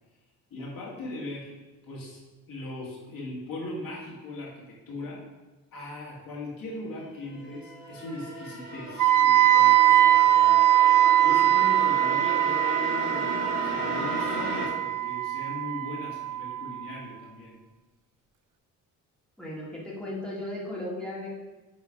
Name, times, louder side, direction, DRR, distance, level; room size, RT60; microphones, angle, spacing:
voice 1, 0.5-1.5 1.8-2.2 2.5-5.2 5.7-10.6 11.2-17.6, left 2 dB, 70° left, -5 dB, 2.2 m, -39 dB
sound 1, 7.0-14.7, right 1 dB, 25° right, 2.2 m, -35 dB
Wind instrument woodwind instrument, 9.0-16.9, right 12 dB, 60° right, 0.5 m, -22 dB
voice 2, 19.4-21.3, left 1 dB, 5° left, -5 dB, 1.8 m, -36 dB
8.1 x 3.1 x 4.9 m, 1.2 s
cardioid pair, 90°, 35 cm